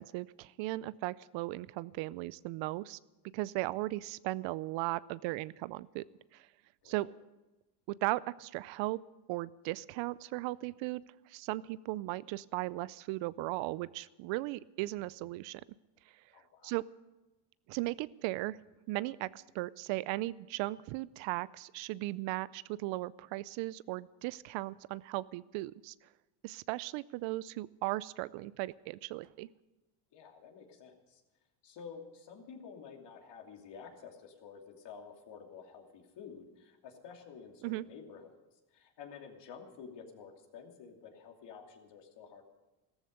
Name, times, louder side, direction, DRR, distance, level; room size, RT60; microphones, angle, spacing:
voice 1, 0.0-3.0 3.3-6.0 6.3-6.4 6.9-7.1 8.0-9.0 9.3-11.0 11.3-15.6 16.6-16.9 17.7-18.6 18.9-25.9 26.4-29.5 37.6-37.8, right 19 dB, 70° right, 20 dB, 0.6 m, -37 dB
voice 2, 16.3-16.7 30.1-31.2 31.6-38.3 38.7-42.4, left 6 dB, 60° left, 2 dB, 2.8 m, -51 dB
14.0 x 13.5 x 6.6 m, 1.1 s
supercardioid pair, 90°, 48 cm